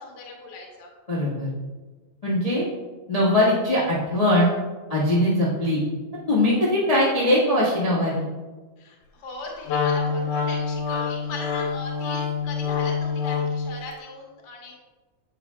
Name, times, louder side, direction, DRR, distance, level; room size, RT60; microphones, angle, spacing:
voice 1, 0.0-0.9 8.8-14.8, left 4 dB, 55° left, -1 dB, 1.2 m, -39 dB
voice 2, 1.1-1.5 2.2-2.6 3.1-4.5 4.9-5.8 6.3-8.2, left 1 dB, 85° left, -8 dB, 0.3 m, -21 dB
Wind instrument woodwind instrument, 9.7-13.7, left 5 dB, 70° left, 1.8 m, -26 dB
8.5 x 5.7 x 2.2 m, 1.3 s
omnidirectional pair, 3.3 m